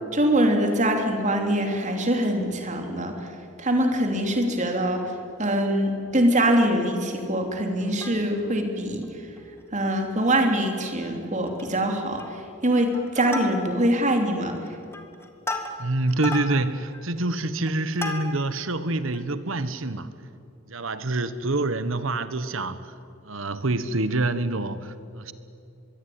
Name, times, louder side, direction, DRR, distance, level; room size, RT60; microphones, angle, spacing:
voice 1, 0.1-3.2 3.6-5.1 5.4-9.1 9.7-14.6, right 1 dB, 35° right, 4 dB, 3.4 m, -23 dB
Plucked string instrument, 7.8-8.6 9.0-9.1 9.4-9.6 10.0-10.7 11.0-11.1 11.5-11.8 12.2-12.6 12.9-14.0 14.5-18.6 19.1-19.2, left 2 dB, 10° left, 2.0 m, -36 dB
voice 2, 15.8-20.1 20.7-22.9 23.2-25.3, right 2 dB, 70° right, 13 dB, 1.3 m, -26 dB
24.0 x 22.0 x 9.6 m, 2.6 s
head